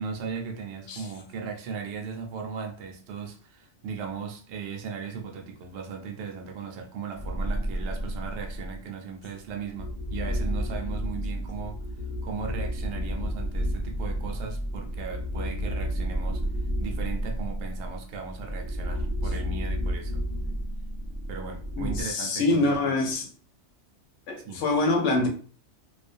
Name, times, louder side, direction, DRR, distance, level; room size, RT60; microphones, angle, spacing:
voice 1, 0.0-11.8 12.2-16.5 16.8-20.2 21.3-23.0 24.4-24.7, right 6 dB, 70° right, 0.8 m, -37 dB
sound 1, 7.1-8.9 9.5-22.0, equal, 45° left, 0.7 m, -31 dB
voice 2, 21.8-23.3 24.3-25.3, left 2 dB, 80° left, 1.0 m, -25 dB
2.4 x 2.2 x 2.4 m
omnidirectional pair, 1.2 m